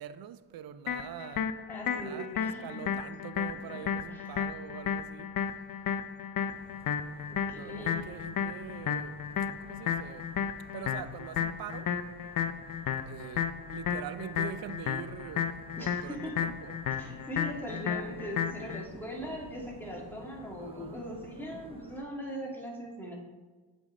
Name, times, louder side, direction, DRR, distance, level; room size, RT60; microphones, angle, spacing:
voice 1, 0.0-1.5 2.0-5.3 7.5-9.3 9.6-10.3 10.7-12.0 13.0-16.8 20.6-21.8, right 10 dB, 50° right, 0.5 m, -44 dB
sound 1, 0.9-18.8, left 8 dB, 45° left, 0.5 m, -33 dB
voice 2, 1.7-3.0 4.1-4.3 7.3-8.1 15.8-16.4 17.0-23.1, equal, 5° left, 1.9 m, -40 dB
sound 2, 6.5-22.0, right 1 dB, 10° right, 0.7 m, -52 dB
7.0 x 5.2 x 3.1 m
supercardioid pair, 50°, 49 cm